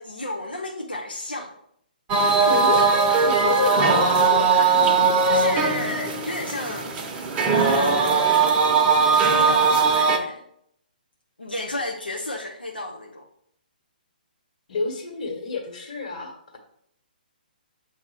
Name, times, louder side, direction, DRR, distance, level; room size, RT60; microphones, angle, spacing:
voice 1, 0.0-1.5 5.3-6.9 7.5-8.7 9.0-10.4 11.4-13.2, left 2 dB, 85° left, 0 dB, 0.9 m, -32 dB
sound 1, 2.1-10.2, right 4 dB, 20° right, 0.8 m, -19 dB
voice 2, 2.4-2.9 3.2-5.1 14.7-16.6, left 4 dB, 50° left, 1 dB, 1.7 m, -29 dB
7.5 x 2.9 x 4.6 m, 0.70 s
figure-of-eight pair, 130°, 5 cm